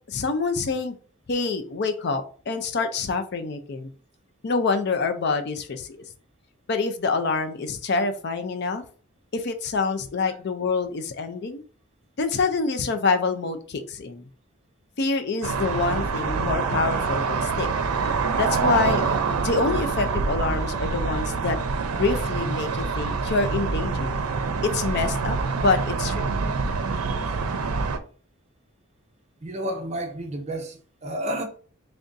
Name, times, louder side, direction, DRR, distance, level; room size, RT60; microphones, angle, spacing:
voice 1, 0.1-0.9 1.3-3.9 4.4-6.0 6.7-8.8 9.3-11.6 12.2-14.2 15.0-17.7 18.4-19.0 19.4-21.6 21.9-24.2 24.6-26.3, left 4 dB, 50° left, 0.5 m, -26 dB
sound 1, 15.4-28.0, right 4 dB, 90° right, 0.5 m, -26 dB
voice 2, 29.4-31.4, right 1 dB, 30° right, 0.5 m, -31 dB
3.4 x 2.6 x 3.8 m
head